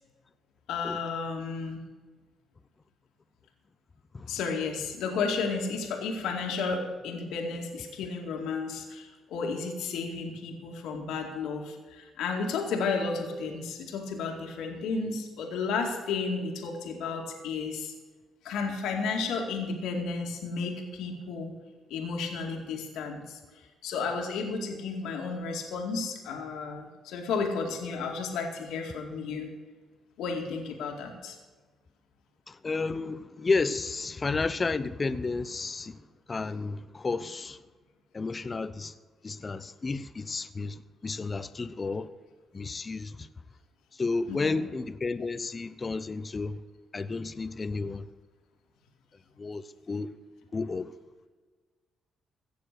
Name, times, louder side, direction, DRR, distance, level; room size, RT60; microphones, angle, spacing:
voice 1, 0.7-1.8 4.3-17.9 18.4-21.5 21.9-23.4 23.8-29.5 30.2-31.4 44.3-44.6, left 4 dB, 85° left, 2.2 m, -32 dB
voice 2, 32.5-35.9 36.3-37.6 38.1-38.9 39.2-42.1 42.5-43.3 44.0-46.6 46.9-48.0 49.4-50.1 50.5-50.9, left 3 dB, 30° left, 0.7 m, -32 dB
16.5 x 6.9 x 6.7 m
cardioid pair, 90°, 0 cm